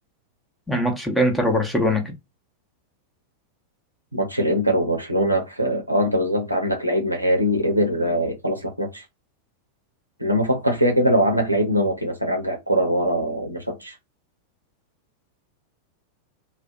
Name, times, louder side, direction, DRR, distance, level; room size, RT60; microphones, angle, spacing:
voice 1, 0.7-2.1, left 1 dB, 5° left, 0.8 m, -21 dB
voice 2, 4.1-9.0 10.2-13.9, equal, 90° right, 0.6 m, -22 dB
2.5 x 2.1 x 2.4 m
figure-of-eight pair, 90°, 0 cm